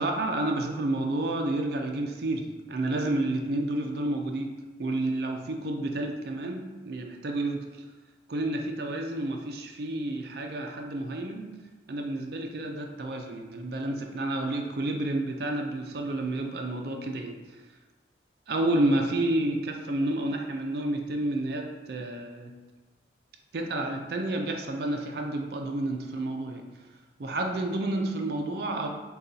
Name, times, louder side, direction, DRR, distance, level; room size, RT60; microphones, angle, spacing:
voice 1, 0.0-7.7 8.3-11.6 11.9-17.4 18.5-22.5 23.5-26.6 27.2-28.9, right 1 dB, 60° right, 2 dB, 0.4 m, -30 dB
6.6 x 2.3 x 2.7 m, 1.2 s
head